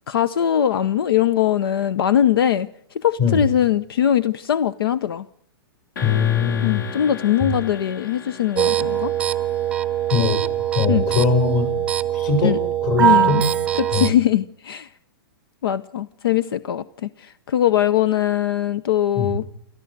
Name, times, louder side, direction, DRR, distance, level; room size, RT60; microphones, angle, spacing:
voice 1, 0.1-2.7 2.9-5.3 6.6-9.1 10.9-11.0 12.4-12.6 13.0-13.4 13.8-14.9 15.6-19.4, left 10 dB, 80° left, 0.7 m, -21 dB
sound 1, 6.0-10.9, left 4 dB, 60° left, 4.2 m, -36 dB
voice 2, 6.0-6.8 7.4-7.5 10.1-10.4 10.7-11.7 12.1-13.4 13.9-14.1 19.2-19.3, left 5 dB, 40° left, 6.5 m, -21 dB
sound 2, 8.6-14.1, right 11 dB, 10° right, 0.7 m, -22 dB
29.0 x 14.0 x 6.7 m
hypercardioid pair, 150°, 12 cm